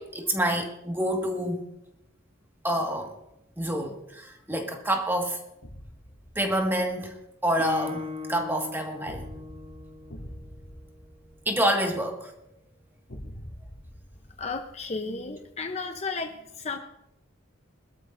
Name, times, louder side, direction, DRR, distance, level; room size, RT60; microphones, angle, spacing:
voice 1, 0.0-1.6 2.6-3.1 3.6-5.4 6.4-7.2 7.4-9.3 11.5-12.3, right 1 dB, 10° right, 2 dB, 1.7 m, -27 dB
sound 1, 5.6-7.0 9.1-12.0 13.1-15.2, equal, 80° left, 3.1 m, -45 dB
Guitar, 7.6-11.3, left 4 dB, 30° right, 1.3 m, -39 dB
voice 2, 14.4-16.8, left 4 dB, 30° left, 6 dB, 0.7 m, -33 dB
22.0 x 12.5 x 2.6 m, 0.86 s
head